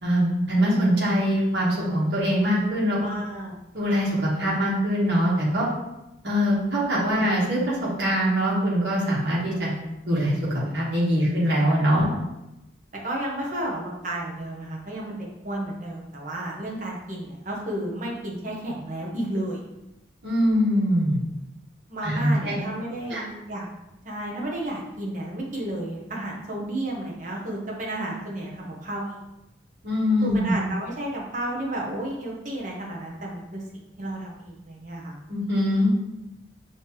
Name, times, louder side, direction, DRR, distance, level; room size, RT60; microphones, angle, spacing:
voice 1, 0.0-3.0 3.7-5.7 6.2-9.7 10.0-10.3 10.7-12.1 20.2-21.2 22.0-22.5 23.1-23.2 29.8-30.5 35.3-35.9, equal, 65° right, -6 dB, 1.6 m, -23 dB
voice 2, 3.0-3.6 12.0-12.1 13.0-19.7 21.9-23.7 24.0-29.2 30.2-35.1, right 1 dB, 40° right, -3 dB, 1.0 m, -32 dB
5.5 x 2.9 x 3.2 m, 0.93 s
head